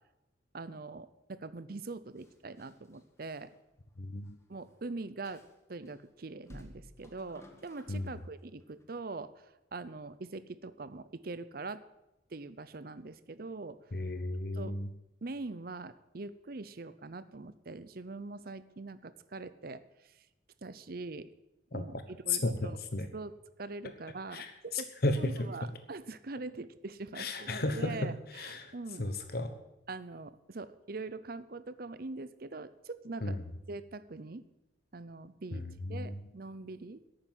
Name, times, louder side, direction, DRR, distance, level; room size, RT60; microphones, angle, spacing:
voice 1, 0.5-3.5 4.5-5.4 5.7-9.3 9.7-11.8 12.3-13.8 14.4-14.8 15.2-20.1 20.6-21.3 21.7-22.0 22.2-22.8 23.1-24.9 25.2-29.0 29.9-33.4 33.7-34.4 34.9-35.6 35.9-37.0, right 3 dB, 55° right, 14 dB, 0.7 m, -43 dB
sound 1, 2.1-4.4 4.7-4.8 5.2-5.9 6.4-8.3 8.6-8.8, left 1 dB, 15° left, 1.5 m, -55 dB
voice 2, 4.0-4.4 7.9-8.1 13.9-14.9 21.7-21.8 22.3-23.1 24.3-25.5 27.1-28.7 29.0-29.5 33.2-33.4 35.5-36.2, left 2 dB, 55° left, 8 dB, 1.0 m, -34 dB
11.5 x 8.9 x 8.1 m, 0.93 s
head